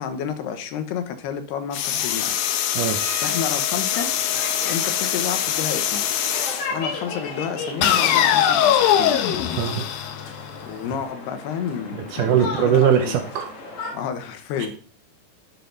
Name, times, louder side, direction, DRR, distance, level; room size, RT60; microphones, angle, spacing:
voice 1, 0.0-2.8 3.2-4.1 4.6-6.0 6.7-9.2 10.6-13.2 13.9-14.7, left 7 dB, 90° left, 8 dB, 3.2 m, -30 dB
sound 1, 1.7-6.7 7.8-10.7, left 10 dB, 75° left, 2.5 m, -22 dB
sound 2, 2.9-10.4, left 2 dB, 15° right, 1.8 m, -41 dB
sound 3, 3.9-14.0, left 3 dB, 55° left, 3.0 m, -36 dB
voice 2, 12.1-13.5, right 9 dB, 70° right, 6 dB, 2.1 m, -20 dB
11.5 x 7.5 x 4.0 m, 0.43 s
omnidirectional pair, 4.5 m